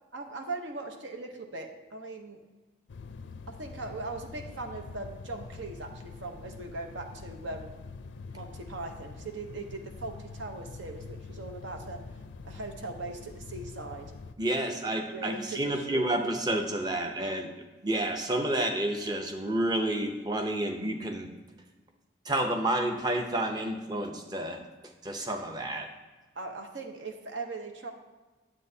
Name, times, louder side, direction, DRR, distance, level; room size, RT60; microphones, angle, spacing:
voice 1, 0.1-2.4 3.5-7.7 8.3-12.0 12.4-14.1 14.6-14.8 15.1-16.1 26.4-27.9, right 3 dB, 80° right, 4 dB, 0.9 m, -40 dB
sound 1, 2.9-14.3, left 4 dB, 75° left, 0.4 m, -45 dB
voice 2, 14.4-17.5 17.8-21.3 22.3-24.6 25.0-25.9, right 1 dB, 20° right, 4 dB, 0.6 m, -30 dB
9.9 x 7.8 x 2.7 m, 1.2 s
head